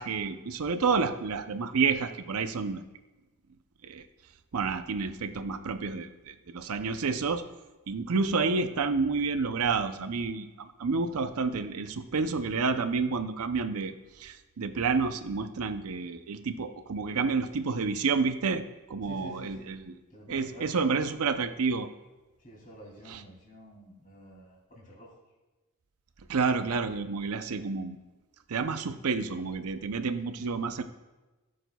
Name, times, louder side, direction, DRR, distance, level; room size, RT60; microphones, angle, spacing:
voice 1, 0.0-2.8 3.8-4.0 4.5-7.4 7.9-18.6 18.9-19.8 20.3-21.9 23.1-23.2 26.3-28.0 28.5-30.8, right 4 dB, 75° right, 9 dB, 0.6 m, -29 dB
voice 2, 19.0-19.7 20.1-21.2 22.4-25.2 30.4-30.7, equal, 40° left, -4 dB, 2.8 m, -48 dB
17.0 x 6.4 x 2.3 m, 1.1 s
head